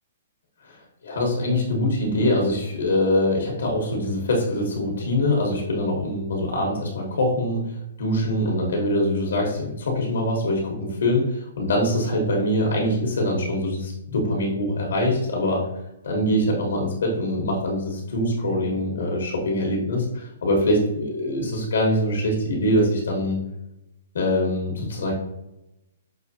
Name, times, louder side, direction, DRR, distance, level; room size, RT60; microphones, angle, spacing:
voice 1, 1.0-15.6 16.0-23.4 24.1-25.1, left 1 dB, 80° left, -1 dB, 1.2 m, -23 dB
6.1 x 2.7 x 2.7 m, 0.88 s
hypercardioid pair, 170°, 0 cm